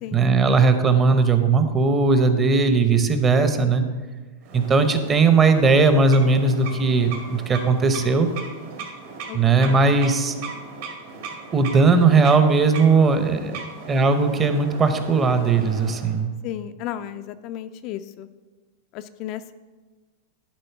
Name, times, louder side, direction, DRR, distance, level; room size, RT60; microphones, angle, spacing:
voice 1, 0.1-3.8 4.5-8.3 9.3-10.3 11.5-13.6 13.9-16.3, right 4 dB, 20° right, 9 dB, 0.7 m, -18 dB
sound 1, 4.4-16.2, right 4 dB, 60° right, 1.8 m, -38 dB
voice 2, 9.3-9.8 16.4-18.3 18.9-19.5, left 12 dB, 40° left, 10 dB, 0.3 m, -34 dB
11.5 x 3.8 x 5.8 m, 1.3 s
supercardioid pair, 150°, 0 cm